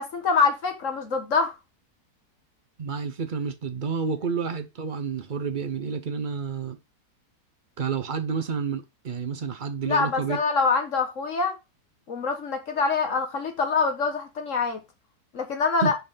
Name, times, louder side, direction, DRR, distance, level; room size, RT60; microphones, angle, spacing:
voice 1, 0.0-1.6 9.9-11.6 12.1-14.8 15.3-15.9, left 4 dB, 50° left, 1.4 m, -25 dB
voice 2, 2.8-6.8 7.8-10.4 15.8-15.9, right 6 dB, 55° right, 0.5 m, -29 dB
5.8 x 3.9 x 5.6 m
omnidirectional pair, 1.8 m